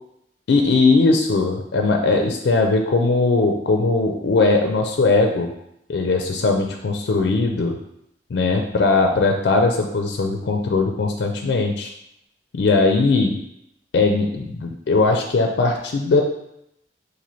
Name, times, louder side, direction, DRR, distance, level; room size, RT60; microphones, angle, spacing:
voice 1, 0.5-5.5 5.9-7.8 8.3-11.9 12.5-13.4 13.9-16.2, left 3 dB, 70° left, 3 dB, 0.4 m, -19 dB
4.1 x 2.6 x 3.0 m, 0.79 s
head